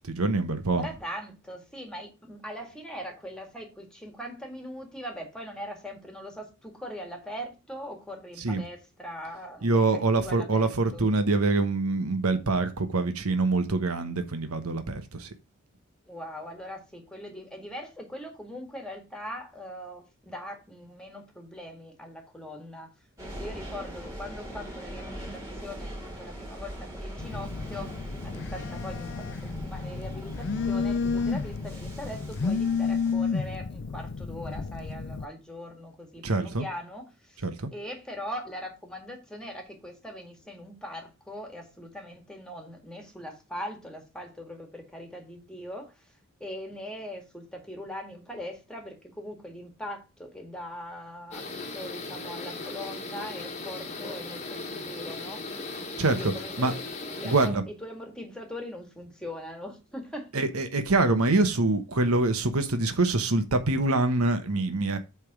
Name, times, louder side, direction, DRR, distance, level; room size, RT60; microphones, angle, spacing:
voice 1, 0.1-0.9 8.4-8.6 9.6-15.3 36.2-36.6 37.4-37.7 56.0-56.3 56.6-56.7 57.2-57.6 60.3-65.0, right 2 dB, 85° right, 1.1 m, -25 dB
voice 2, 0.7-11.1 16.1-22.9 23.3-27.9 28.2-37.5 37.7-46.1 46.4-55.5 56.1-60.3, equal, 5° left, 1.8 m, -41 dB
sound 1, 23.2-33.1, right 1 dB, 15° right, 2.8 m, -41 dB
Telephone, 27.2-35.2, left 5 dB, 50° left, 0.4 m, -31 dB
sound 2, 51.3-57.5, left 3 dB, 30° left, 1.2 m, -37 dB
8.2 x 3.6 x 6.0 m
head